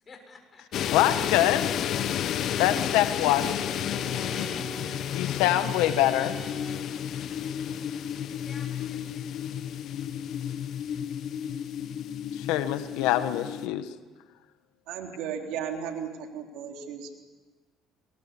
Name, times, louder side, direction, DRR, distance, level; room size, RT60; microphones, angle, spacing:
voice 1, 0.0-0.9 3.9-4.4 7.0-7.1 8.4-9.3, left 4 dB, 30° left, 4 dB, 6.6 m, -51 dB
sound 1, 0.7-13.7, left 10 dB, 60° left, 1.0 m, -32 dB
voice 2, 0.9-1.7 2.6-3.6 5.1-6.4 12.3-13.9, left 13 dB, 90° left, 10 dB, 1.3 m, -24 dB
Bowed string instrument, 2.2-6.9, right 2 dB, 10° left, 5.7 m, -44 dB
voice 3, 14.9-17.1, right 7 dB, 80° right, 3 dB, 3.6 m, -35 dB
30.0 x 21.5 x 7.1 m, 1.3 s
cardioid pair, 105°, 0 cm